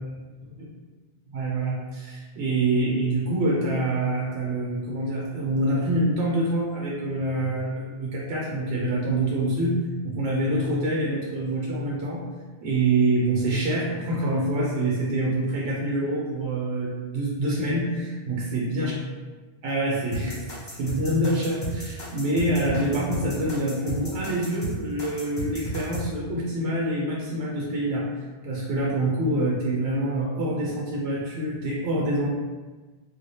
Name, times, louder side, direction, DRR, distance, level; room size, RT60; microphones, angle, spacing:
voice 1, 1.3-9.8 10.0-12.2 12.6-17.8 18.3-18.9 19.6-28.0 28.4-32.3, right 1 dB, 75° right, -5 dB, 0.9 m, -26 dB
sound 1, 20.1-26.0, right 2 dB, 45° left, 1.0 m, -34 dB
3.2 x 2.4 x 2.7 m, 1.3 s
omnidirectional pair, 1.1 m